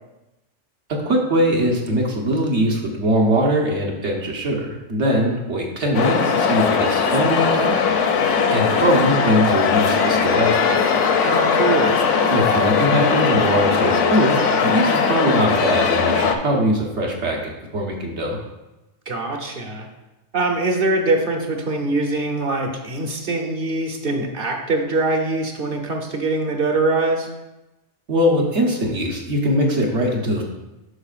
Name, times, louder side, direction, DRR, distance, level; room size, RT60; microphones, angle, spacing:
voice 1, 0.9-7.7 8.5-10.8 12.3-18.4 28.1-30.4, equal, 70° right, 0 dB, 1.4 m, -21 dB
sound 1, 5.9-16.4, left 6 dB, 80° left, 1.0 m, -19 dB
voice 2, 11.2-12.1 19.1-19.9 20.3-27.3, right 2 dB, 50° right, 2 dB, 1.0 m, -23 dB
11.5 x 4.4 x 2.5 m, 0.99 s
omnidirectional pair, 1.3 m